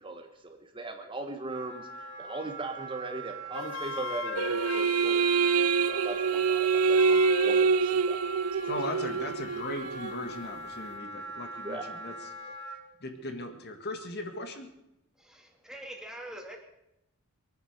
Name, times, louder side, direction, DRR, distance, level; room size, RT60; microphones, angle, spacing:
voice 1, 0.0-5.2 5.9-8.2 8.5-8.8 11.6-11.9, right 2 dB, 25° right, 5 dB, 1.2 m, -39 dB
Wind instrument woodwind instrument, 1.5-12.8, right 4 dB, 55° right, 3.5 m, -41 dB
Wind instrument woodwind instrument 2, 3.5-7.7, left 7 dB, 65° left, 0.6 m, -38 dB
sound 1, 4.4-10.2, right 5 dB, 90° right, 0.5 m, -26 dB
voice 2, 8.7-12.1 12.4-12.6 13.0-14.7, left 1 dB, 50° left, 6 dB, 1.8 m, -38 dB
voice 3, 15.2-16.6, right 1 dB, 5° right, 1 dB, 2.4 m, -44 dB
23.0 x 9.4 x 6.6 m, 0.86 s
head